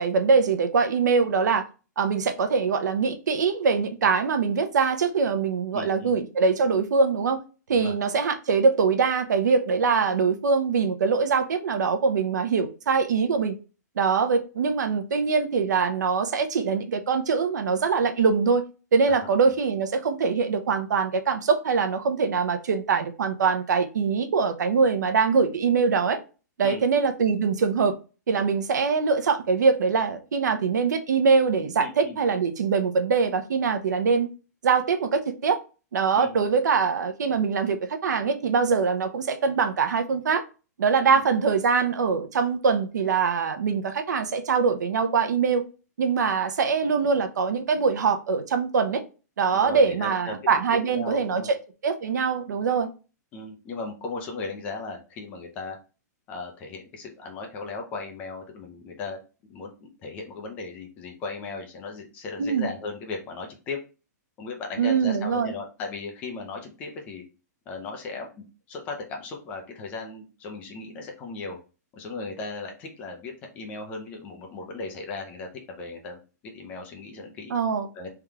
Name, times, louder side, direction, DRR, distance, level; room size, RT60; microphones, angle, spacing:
voice 1, 0.0-1.6 2.0-7.4 7.7-13.6 14.0-18.6 18.9-26.2 26.6-27.9 28.3-34.3 34.6-35.6 35.9-40.4 40.8-45.6 46.0-49.0 49.4-51.6 51.8-52.9 62.4-62.7 64.8-65.5 77.5-77.9, right 5 dB, 75° right, 0.8 m, -23 dB
voice 2, 5.7-6.2 7.7-7.9 19.1-19.2 26.6-26.8 31.8-32.2 36.2-36.4 41.1-41.2 49.5-50.4 50.9-51.5 53.3-55.8 56.3-59.2 59.5-63.8 64.4-67.2 67.7-71.6 71.9-77.5 77.9-78.1, left 3 dB, 15° left, 0.6 m, -37 dB
3.5 x 3.1 x 3.5 m
hypercardioid pair, 175°, 10 cm